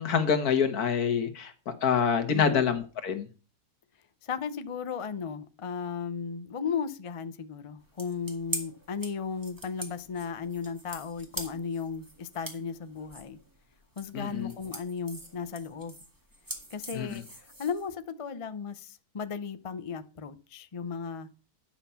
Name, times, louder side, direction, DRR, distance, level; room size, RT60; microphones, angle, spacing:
voice 1, 0.0-3.3 14.1-14.5 16.9-17.2, left 7 dB, 70° left, 1.8 m, -26 dB
voice 2, 2.3-2.6 4.2-13.4 14.0-15.9 16.7-17.2 17.6-21.3, left 6 dB, 45° left, 0.4 m, -35 dB
sound 1, 7.8-18.0, right 1 dB, 15° right, 1.8 m, -43 dB
10.5 x 6.0 x 5.7 m
omnidirectional pair, 1.7 m